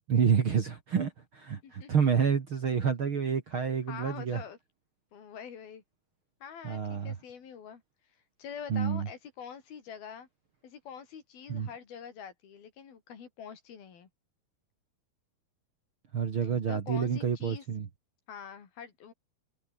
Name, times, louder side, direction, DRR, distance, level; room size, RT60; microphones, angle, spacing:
voice 1, 0.1-4.4 6.6-7.2 8.7-9.1 11.5-11.7 16.1-17.9, right 6 dB, 45° right, 2.0 m, -28 dB
voice 2, 3.9-4.6 5.1-5.8 6.4-7.8 8.4-10.3 10.6-14.1 16.4-17.6 18.3-19.1, left 7 dB, 65° left, 5.4 m, -45 dB
omnidirectional pair, 4.7 m